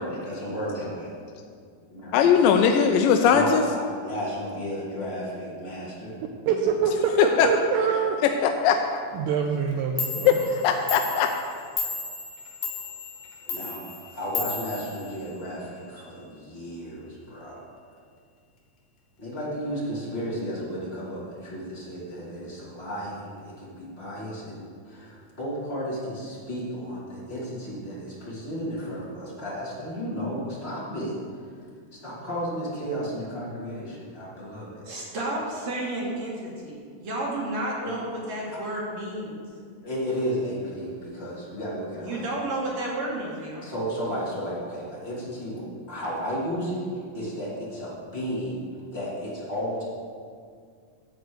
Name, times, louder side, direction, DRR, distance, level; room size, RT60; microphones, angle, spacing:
voice 1, 0.1-1.1 1.9-2.2 3.2-6.2 13.4-17.6 19.2-31.2 31.9-34.9 37.8-37.9 39.8-42.2 43.6-48.6 48.9-49.8, equal, 20° left, -7 dB, 2.2 m, -33 dB
voice 2, 2.1-3.6 7.4-7.5 8.6-9.0 10.3-11.3, left 7 dB, 80° left, 4 dB, 2.2 m, -19 dB
voice 3, 6.5-8.2 9.1-10.4, right 6 dB, 80° right, 2 dB, 2.1 m, -25 dB
Clock, 9.7-9.8 10.0-15.6, left 4 dB, 60° left, 1.5 m, -34 dB
voice 4, 34.9-39.4 42.0-43.7, right 1 dB, 55° right, -4 dB, 2.4 m, -31 dB
11.0 x 4.3 x 7.9 m, 2.1 s
omnidirectional pair, 4.0 m